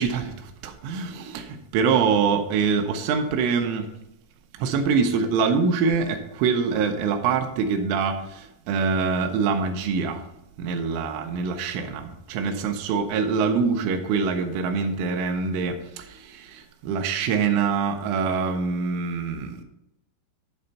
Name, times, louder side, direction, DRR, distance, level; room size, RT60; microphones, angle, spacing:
voice 1, 0.0-3.9 4.5-10.2 10.6-19.6, right 5 dB, 80° right, 6 dB, 3.1 m, -24 dB
11.0 x 4.3 x 5.5 m, 0.85 s
omnidirectional pair, 6.0 m